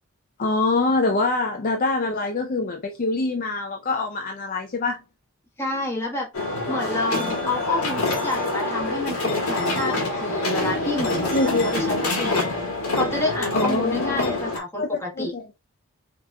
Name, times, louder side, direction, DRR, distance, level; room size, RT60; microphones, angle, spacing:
voice 1, 0.4-5.0 6.7-7.3 11.3-11.7 13.5-14.3 14.8-15.4, left 3 dB, 40° left, 0.4 m, -25 dB
voice 2, 5.6-6.3 6.7-12.4 12.9-15.3, left 1 dB, 10° left, 1.2 m, -29 dB
sound 1, 6.3-14.6, left 2 dB, 75° left, 1.6 m, -26 dB
5.1 x 2.9 x 2.2 m
head